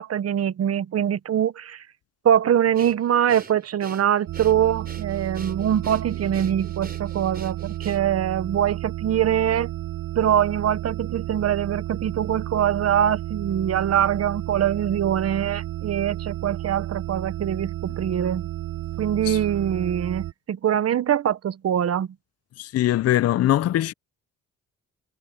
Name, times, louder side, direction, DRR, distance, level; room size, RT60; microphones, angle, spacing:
voice 1, 0.0-1.8 2.2-9.7 10.1-18.5 19.0-22.1, right 10 dB, 55° right, 1.1 m, -23 dB
Breathing, 2.7-8.3, right 4 dB, 30° right, 4.6 m, -44 dB
sound 1, 4.3-20.3, right 13 dB, 85° right, 4.1 m, -32 dB
voice 2, 22.6-23.9, left 13 dB, 55° left, 0.5 m, -21 dB
cardioid pair, 90°, 30 cm